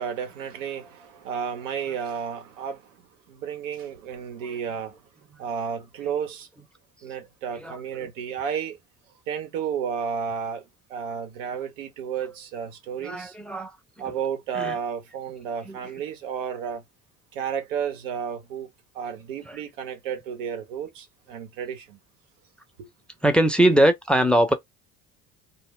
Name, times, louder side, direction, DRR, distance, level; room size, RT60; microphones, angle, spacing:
voice 1, 0.0-2.9 3.3-5.0 5.4-6.5 7.0-8.8 9.3-10.6 10.9-13.3 14.0-16.8 17.3-18.7 18.9-22.0 22.8-22.9, right 7 dB, 85° right, 1.0 m, -32 dB
voice 2, 13.0-13.7 14.5-14.7 15.7-15.8 19.5-19.6 23.2-24.5, right 1 dB, 5° left, 0.6 m, -21 dB
2.2 x 2.0 x 3.6 m
hypercardioid pair, 65°, 37 cm